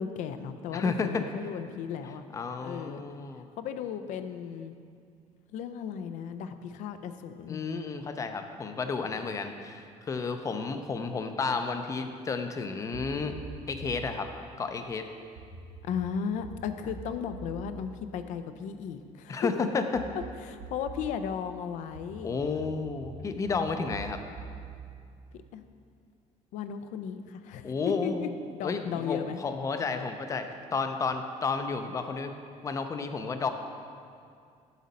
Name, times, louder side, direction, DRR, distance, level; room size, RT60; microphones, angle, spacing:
voice 1, 0.0-2.2 2.6-3.0 3.6-4.7 5.5-7.6 15.8-19.7 20.5-22.3 25.5-25.7 26.5-28.3 28.5-29.4, left 7 dB, 75° left, 9 dB, 0.5 m, -35 dB
voice 2, 0.7-1.2 2.3-3.5 7.5-13.4 13.7-14.3 14.6-15.1 19.3-20.0 22.2-24.2 27.6-28.3 28.6-32.3 32.6-33.5, left 4 dB, 25° left, 7 dB, 0.5 m, -32 dB
sound 1, 12.9-14.2 15.4-19.1 19.9-21.2 21.9-25.9, right 4 dB, 75° right, 0.7 m, -45 dB
8.0 x 6.3 x 4.1 m, 2.3 s
cardioid pair, 145°, 13 cm